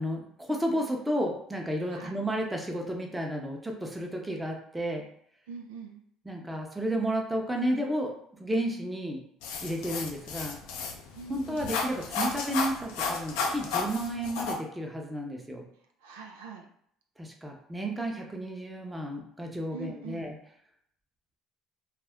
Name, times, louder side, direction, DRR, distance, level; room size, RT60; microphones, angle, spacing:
voice 1, 0.0-5.1 6.3-9.2 9.6-10.6 11.3-15.6 17.2-20.3, right 1 dB, 10° right, 1 dB, 0.7 m, -32 dB
voice 2, 5.5-6.0 11.1-11.6 16.0-16.7 19.7-20.3, right 5 dB, 85° right, 3 dB, 0.4 m, -43 dB
sound 1, 9.4-14.5, left 4 dB, 75° left, 0.5 m, -33 dB
2.3 x 2.1 x 3.5 m, 0.68 s
hypercardioid pair, 75°, 0 cm